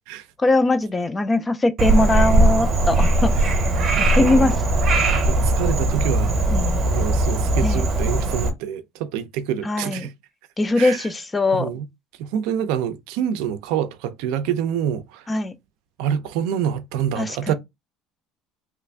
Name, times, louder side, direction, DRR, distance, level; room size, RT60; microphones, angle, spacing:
voice 1, 0.4-3.3 4.0-4.6 6.5-6.8 7.6-7.8 9.6-10.1 10.6-11.7 15.3-15.5 17.2-17.5, left 2 dB, 10° left, 0.3 m, -21 dB
Frog, 1.8-8.5, right 2 dB, 30° right, 0.8 m, -19 dB
voice 2, 3.9-4.5 5.2-6.4 6.9-10.1 10.8-11.0 11.5-11.8 12.2-15.3 16.0-17.5, right 9 dB, 70° right, 0.5 m, -26 dB
3.1 x 2.4 x 3.3 m
cardioid pair, 175°, 0 cm